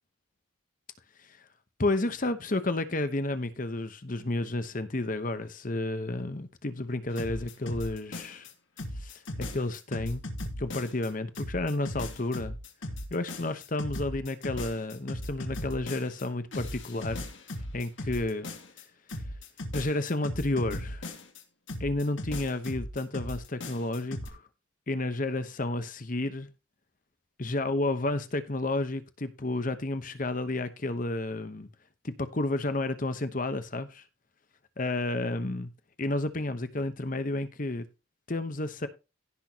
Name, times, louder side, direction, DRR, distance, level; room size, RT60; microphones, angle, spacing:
voice 1, 1.8-8.5 8.9-10.2 10.6-12.5 13.1-17.2 17.7-18.5 18.8-18.9 19.1-19.2 19.7-21.1 21.8-24.4 24.9-26.5 27.4-31.7 32.0-34.0 34.8-35.7 36.0-37.9 38.3-38.9, left 2 dB, 40° left, 1.0 m, -31 dB
sound 1, 7.2-8.5 8.8-11.1 11.4-16.2 16.5-18.8 19.1-21.4 21.7-24.3, left 1 dB, 70° left, 2.6 m, -37 dB
16.5 x 6.3 x 2.9 m
head